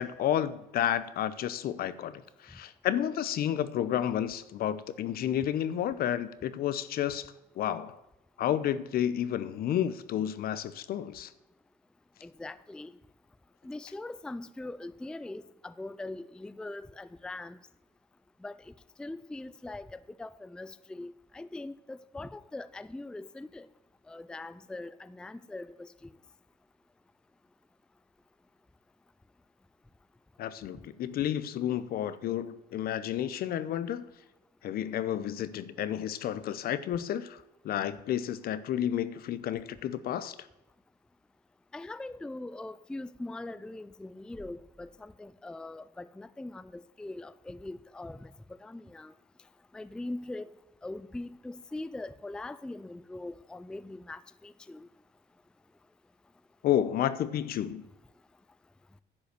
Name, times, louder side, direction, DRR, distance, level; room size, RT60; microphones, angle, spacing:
voice 1, 0.0-8.0 8.4-11.3 30.4-34.0 34.6-40.4 56.6-57.8, left 10 dB, 60° left, 15 dB, 0.8 m, -31 dB
voice 2, 12.2-12.9 13.6-17.6 18.4-18.7 19.0-23.7 24.1-26.1 41.7-49.1 49.7-50.5 50.8-54.9, left 2 dB, 5° left, 16 dB, 0.3 m, -42 dB
10.5 x 5.6 x 8.2 m, 0.95 s
cardioid pair, 110°, 17 cm